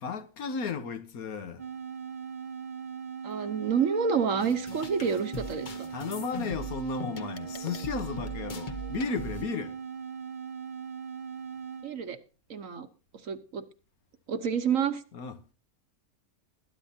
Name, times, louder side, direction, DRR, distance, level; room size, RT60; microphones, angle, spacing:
voice 1, 0.0-1.6 5.9-9.8 15.1-15.4, left 5 dB, 85° left, 1.6 m, -34 dB
sound 1, 1.6-12.0, right 6 dB, 40° right, 0.8 m, -40 dB
voice 2, 3.2-5.9 11.8-12.2 12.5-12.9 13.2-13.6 14.3-15.0, right 6 dB, 65° right, 1.5 m, -28 dB
sound 2, 4.4-9.4, left 1 dB, 40° left, 1.0 m, -40 dB
21.0 x 10.0 x 2.8 m
omnidirectional pair, 1.5 m